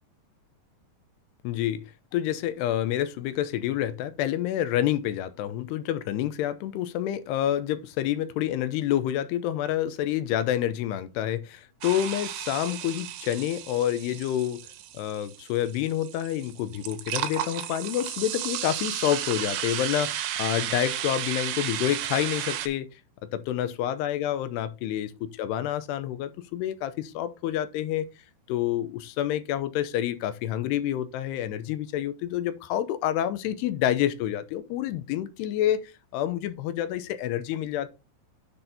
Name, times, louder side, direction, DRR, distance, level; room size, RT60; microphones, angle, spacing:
voice 1, 1.4-1.8 2.1-14.6 14.9-22.9 23.3-25.1 25.4-28.1 28.5-37.9, left 11 dB, 85° left, 2.7 m, -28 dB
sound 1, 11.8-22.7, right 11 dB, 90° right, 3.2 m, -33 dB
10.0 x 4.4 x 4.1 m
omnidirectional pair, 4.9 m